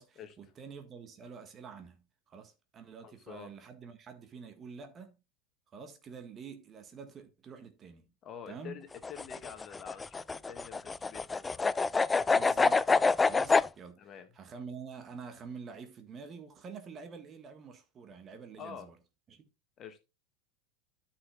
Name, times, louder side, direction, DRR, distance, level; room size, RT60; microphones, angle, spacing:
voice 1, 0.0-5.2 5.7-8.1 8.5-8.8 12.2-19.0 19.3-19.4, right 5 dB, 30° right, 1.6 m, -47 dB
voice 2, 3.0-3.5 8.2-11.6 14.0-14.3 18.6-18.9 19.8-20.0, left 8 dB, 35° left, 1.7 m, -47 dB
sound 1, 8.9-13.7, left 4 dB, 15° left, 0.3 m, -27 dB
13.0 x 5.9 x 2.4 m
figure-of-eight pair, 80°, 0 cm